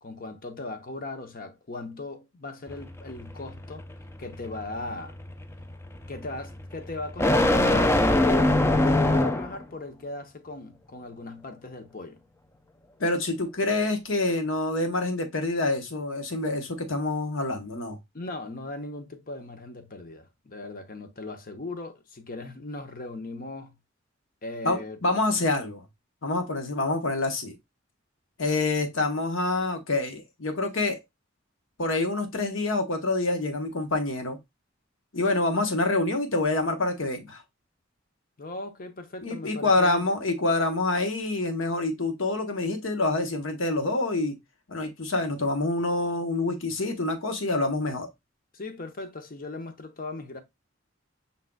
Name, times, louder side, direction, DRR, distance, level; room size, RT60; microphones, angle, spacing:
voice 1, 0.0-3.8 4.2-5.2 6.1-12.2 18.1-23.8 24.4-25.0 25.4-25.5 38.4-40.1 48.5-50.4, left 2 dB, 45° left, 0.8 m, -38 dB
sound 1, 2.7-9.6, left 1 dB, 15° left, 0.4 m, -24 dB
voice 2, 13.0-18.0 24.6-25.8 26.2-27.5 28.4-31.0 31.8-34.4 35.1-37.4 39.2-44.3 44.7-48.1, left 2 dB, 75° left, 1.1 m, -26 dB
5.4 x 3.8 x 2.2 m
head